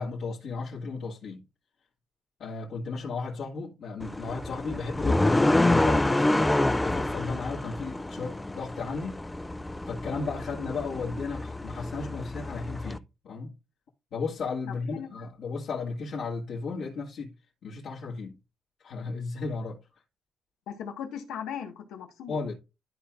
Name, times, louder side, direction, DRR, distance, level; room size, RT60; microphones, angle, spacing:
voice 1, 0.0-1.4 2.4-6.5 6.8-9.2 9.9-13.5 14.1-17.3 17.6-18.4 18.8-19.8 22.3-22.5, left 4 dB, 70° left, 2.0 m, -34 dB
sound 1, 4.0-13.0, left 2 dB, 10° left, 0.4 m, -27 dB
voice 2, 14.7-15.1 20.7-22.4, left 8 dB, 90° left, 1.5 m, -38 dB
13.0 x 4.5 x 2.5 m
cardioid pair, 90°, 0 cm